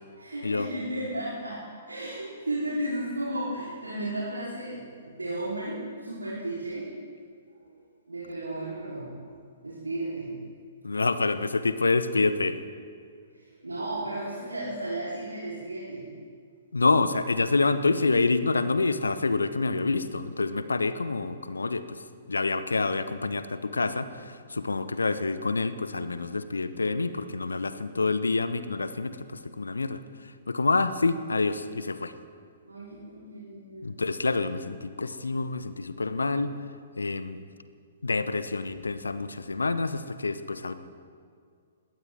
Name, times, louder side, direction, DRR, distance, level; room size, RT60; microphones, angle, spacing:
voice 1, 0.1-6.9 7.7-7.8 8.1-9.2 9.6-10.4 13.3-16.1 32.7-33.9, right 1 dB, 80° right, -8 dB, 3.6 m, -34 dB
voice 2, 10.8-12.6 16.7-22.0 22.3-29.2 29.4-30.0 30.5-32.1 33.8-36.5 37.0-37.4 38.0-40.7, left 3 dB, 75° left, 13 dB, 0.8 m, -27 dB
20.5 x 16.5 x 3.6 m, 2.2 s
figure-of-eight pair, 120°, 0 cm